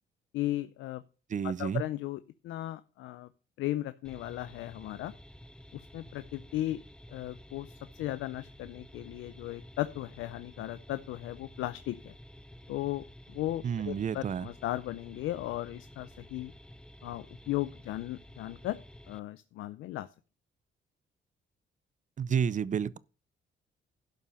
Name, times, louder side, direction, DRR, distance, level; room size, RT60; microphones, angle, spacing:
voice 1, 0.3-1.0 1.4-3.3 3.6-5.1 5.7-6.8 7.1-12.1 12.7-16.5 17.0-18.8 19.1-20.1, left 15 dB, 85° left, 0.5 m, -36 dB
voice 2, 1.3-1.8 13.6-14.5 22.2-23.0, right 7 dB, 40° right, 0.6 m, -30 dB
sound 1, 4.0-19.2, equal, 5° left, 0.6 m, -51 dB
11.5 x 5.4 x 6.4 m
cardioid pair, 90°, 20 cm